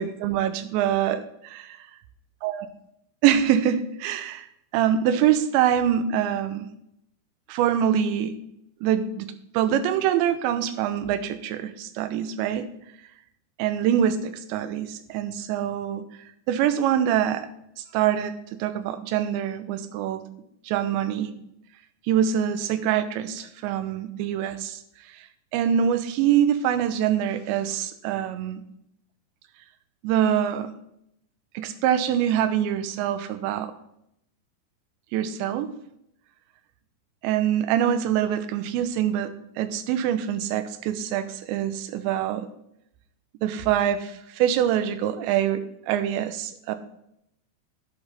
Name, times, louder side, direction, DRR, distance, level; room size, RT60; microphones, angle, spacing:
voice 1, 0.0-1.8 2.4-2.7 3.2-4.5 4.7-6.7 7.5-8.4 8.8-12.7 13.6-16.0 16.5-17.5 17.8-20.2 20.6-21.3 22.1-24.8 25.5-28.6 30.0-30.7 31.5-33.7 35.1-35.7 37.2-42.5 43.4-46.8, right 9 dB, 90° right, 11 dB, 3.1 m, -24 dB
11.0 x 11.0 x 3.4 m, 0.78 s
omnidirectional pair, 5.0 m